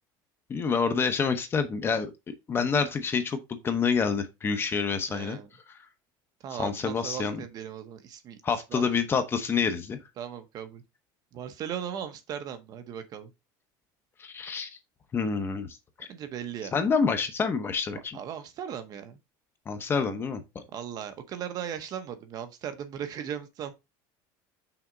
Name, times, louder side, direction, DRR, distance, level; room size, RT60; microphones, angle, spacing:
voice 1, 0.5-2.1 2.5-5.4 6.6-7.4 8.4-10.0 14.2-14.7 15.1-16.1 16.7-18.2 19.7-20.6, left 5 dB, 25° left, 0.9 m, -27 dB
voice 2, 5.1-5.5 6.4-8.8 10.2-10.8 11.3-13.3 16.1-16.8 18.1-19.2 20.0-20.1 20.7-23.7, right 9 dB, 40° right, 0.9 m, -38 dB
5.9 x 4.3 x 3.9 m
cardioid pair, 150°, 10 cm